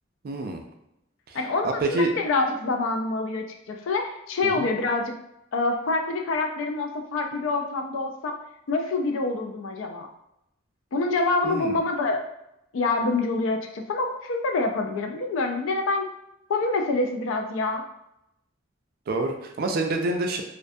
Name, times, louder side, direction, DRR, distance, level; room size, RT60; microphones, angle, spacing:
voice 1, 0.2-0.6 1.3-1.4 1.8-2.1 4.4-4.7 11.4-11.8 19.1-20.4, right 2 dB, 45° right, 3 dB, 0.3 m, -27 dB
voice 2, 1.3-5.1 5.5-8.3 8.7-10.1 10.9-12.2 12.7-16.1 16.5-17.8, left 3 dB, 65° left, 4 dB, 0.4 m, -26 dB
2.4 x 2.2 x 2.5 m, 0.83 s
head